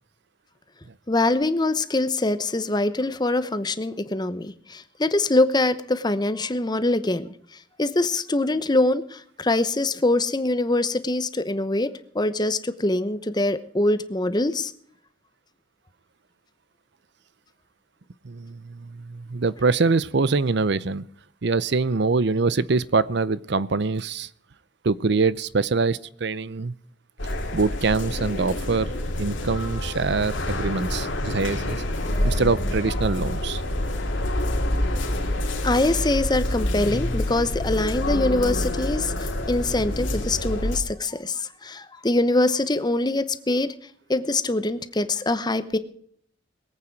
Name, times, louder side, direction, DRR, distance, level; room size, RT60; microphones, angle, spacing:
voice 1, 1.1-7.3 7.8-11.9 12.1-14.7 35.6-43.7 44.1-45.8, left 2 dB, 20° left, 12 dB, 0.9 m, -24 dB
voice 2, 18.2-21.0 21.4-24.3 24.8-26.7 27.5-31.8 32.2-33.6, right 4 dB, 60° right, 19 dB, 0.6 m, -24 dB
sound 1, 27.2-40.8, left 1 dB, 70° left, 2.6 m, -27 dB
22.0 x 8.8 x 4.6 m, 0.62 s
head